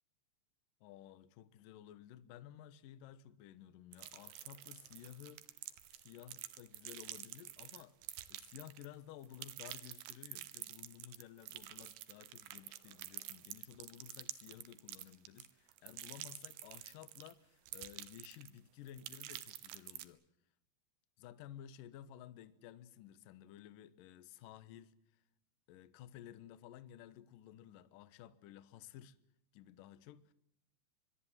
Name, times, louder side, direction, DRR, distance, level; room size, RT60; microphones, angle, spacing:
voice 1, 0.8-5.4 6.0-7.9 8.3-20.2 21.2-25.2 25.7-29.2 29.5-30.3, left 11 dB, 75° left, 2.0 m, -55 dB
sound 1, 3.9-8.9 9.2-17.3 17.7-18.6 18.9-20.0, right 14 dB, 75° right, 3.2 m, -49 dB
24.5 x 22.0 x 7.5 m
omnidirectional pair, 5.5 m